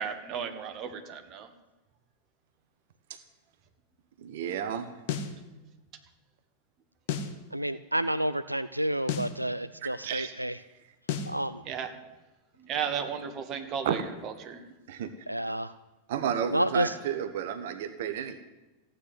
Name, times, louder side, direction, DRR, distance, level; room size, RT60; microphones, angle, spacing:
voice 1, 0.0-1.5 11.7-11.9 12.6-14.6, right 7 dB, 35° right, 6 dB, 2.0 m, -34 dB
voice 2, 4.2-4.9 9.8-10.3 13.8-14.0 14.9-15.1 16.1-18.4, right 8 dB, 55° right, 10 dB, 1.1 m, -32 dB
sound 1, 5.1-5.4 7.1-7.4 9.1-9.4 11.1-11.4, left 7 dB, 50° left, 1.6 m, -32 dB
voice 3, 7.5-10.5 11.3-11.6 15.3-15.7 16.5-16.9, right 1 dB, 85° right, 14 dB, 0.4 m, -29 dB
15.0 x 9.1 x 9.6 m, 1.1 s
figure-of-eight pair, 90°, 0 cm